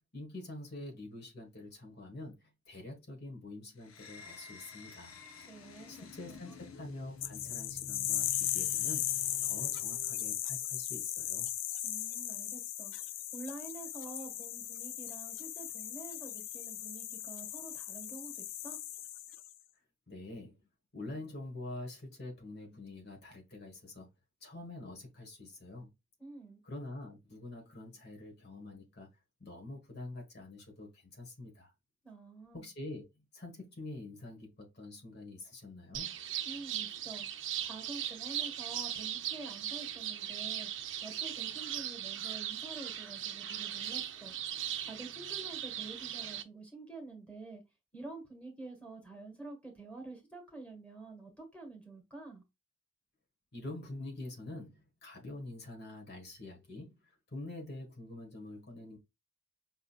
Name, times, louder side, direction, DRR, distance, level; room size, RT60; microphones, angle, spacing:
voice 1, 0.1-5.2 5.9-9.1 9.4-11.5 20.1-20.6 20.9-24.1 24.4-25.9 26.6-29.1 29.4-31.7 32.5-36.1 53.5-59.0, left 2 dB, 50° left, 1.5 m, -46 dB
sound 1, 3.8-10.4, left 5 dB, 85° left, 0.8 m, -51 dB
voice 2, 5.5-6.6 11.8-12.9 13.3-18.8 26.2-26.6 32.0-32.7 36.4-37.3 37.6-40.7 41.0-44.3 44.8-47.6 47.9-52.4, right 3 dB, 5° left, 1.6 m, -48 dB
sound 2, 7.2-19.5, left 12 dB, 65° left, 0.4 m, -37 dB
sound 3, 35.9-46.4, right 10 dB, 60° right, 0.6 m, -38 dB
5.7 x 3.7 x 2.4 m
head